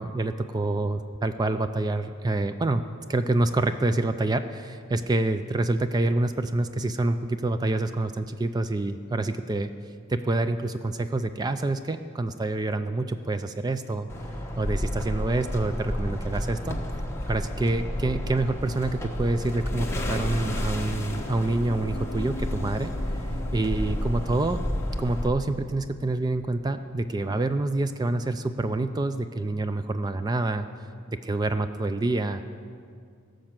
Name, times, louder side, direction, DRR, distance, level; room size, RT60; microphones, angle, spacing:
voice 1, 0.0-2.8 3.1-9.7 10.1-14.1 14.6-16.8 17.3-23.3 23.5-24.6 25.0-30.7 31.1-32.4, right 2 dB, 20° right, 10 dB, 0.3 m, -27 dB
sound 1, 14.1-25.3, left 1 dB, 15° left, 1.1 m, -31 dB
sound 2, 19.7-25.0, left 2 dB, 80° left, 0.7 m, -41 dB
16.5 x 6.4 x 7.4 m, 2.2 s
head